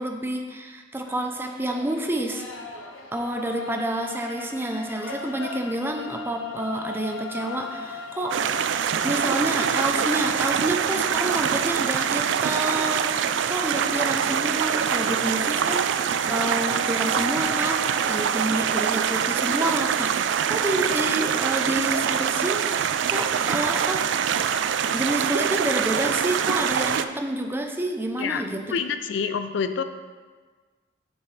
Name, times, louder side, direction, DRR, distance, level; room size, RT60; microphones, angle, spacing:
voice 1, 0.0-2.4 3.1-8.4 9.0-24.0 24.9-28.8, right 1 dB, 10° right, 3 dB, 0.5 m, -29 dB
sound 1, 1.1-18.4, left 3 dB, 80° left, 0.8 m, -39 dB
sound 2, 8.3-27.1, right 8 dB, 65° right, 0.3 m, -24 dB
voice 2, 28.7-29.8, left 6 dB, 65° left, 10 dB, 0.4 m, -27 dB
7.2 x 7.1 x 3.2 m, 1.4 s
head